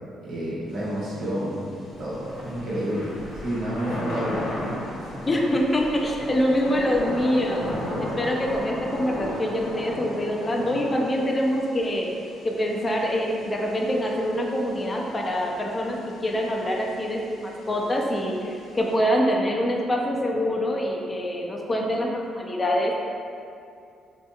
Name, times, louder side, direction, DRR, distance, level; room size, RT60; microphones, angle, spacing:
voice 1, 0.2-1.6 2.0-4.4 5.0-5.2, equal, 70° right, -8 dB, 1.1 m, -29 dB
Thunder / Rain, 0.7-18.9, left 1 dB, 90° left, 0.7 m, -37 dB
sound 1, 1.9-9.9, equal, 50° right, 0.6 m, -44 dB
voice 2, 5.3-7.7 8.0-12.1 12.4-22.9, equal, 25° left, 0 dB, 0.4 m, -25 dB
3.3 x 2.8 x 2.3 m, 2.5 s
cardioid pair, 90°, 0 cm